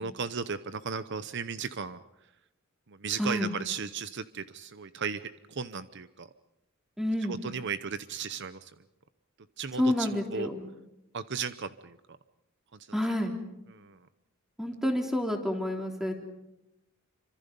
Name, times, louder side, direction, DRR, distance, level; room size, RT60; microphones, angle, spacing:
voice 1, 0.0-2.0 2.9-6.3 7.3-8.7 9.6-10.5 11.1-12.2 12.7-12.8 13.7-14.0, right 5 dB, 55° right, 13 dB, 0.8 m, -35 dB
voice 2, 7.0-7.4 9.8-10.7 12.9-13.3 14.6-16.1, left 1 dB, ahead, 2 dB, 3.3 m, -29 dB
27.5 x 25.5 x 5.4 m, 0.89 s
head